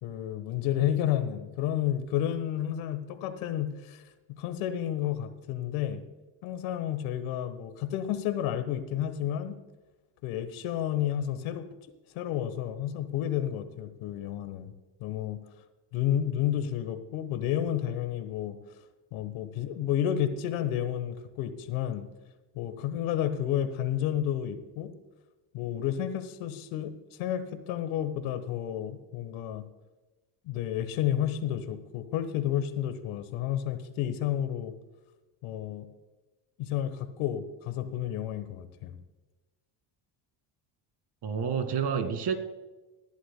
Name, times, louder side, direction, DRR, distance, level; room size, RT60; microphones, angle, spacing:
voice 1, 0.0-4.0 4.3-6.0 6.4-9.6 10.2-11.7 12.1-14.7 15.0-15.4 15.9-18.6 19.1-22.1 22.5-24.9 25.5-29.6 30.4-34.7 35.4-35.9 36.6-39.0, left 11 dB, 85° left, 10 dB, 1.3 m, -31 dB
voice 2, 41.2-42.3, right 7 dB, 55° right, 8 dB, 2.1 m, -29 dB
20.0 x 11.5 x 2.2 m, 1.2 s
cardioid pair, 95°, 47 cm